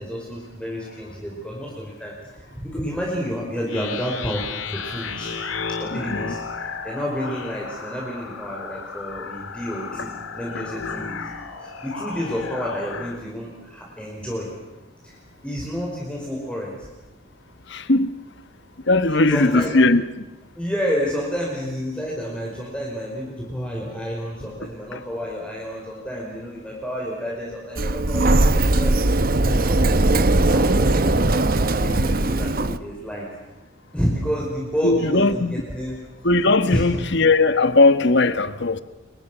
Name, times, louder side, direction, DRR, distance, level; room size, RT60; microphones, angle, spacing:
voice 1, 0.0-4.4 4.7-5.3 5.7-6.4 6.8-11.2 11.6-14.5 15.0-15.2 15.4-16.9 19.1-19.8 20.5-31.4 31.7-33.3 33.9-36.0 36.6-37.0, equal, 5° left, 4.9 m, -30 dB
sound 1, 3.7-13.2, left 5 dB, 80° left, 2.7 m, -33 dB
voice 2, 17.7-18.1 18.9-20.0 34.8-35.5 36.2-38.8, left 2 dB, 60° left, 1.3 m, -18 dB
Sliding door, 27.8-32.8, right 2 dB, 45° right, 1.0 m, -19 dB
29.5 x 24.5 x 6.2 m
head